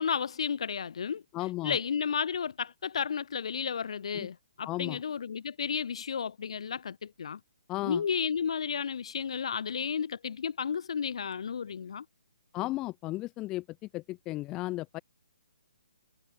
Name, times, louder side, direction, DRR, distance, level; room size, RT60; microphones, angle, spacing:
voice 1, 0.0-1.2 1.6-7.4 7.8-12.1, left 7 dB, 50° left, 7.5 m, -32 dB
voice 2, 1.3-1.8 4.1-4.3 4.6-5.0 7.7-8.0 12.5-13.6 13.9-15.0, left 18 dB, 15° left, 0.9 m, -34 dB
hypercardioid pair, 170°, 4 cm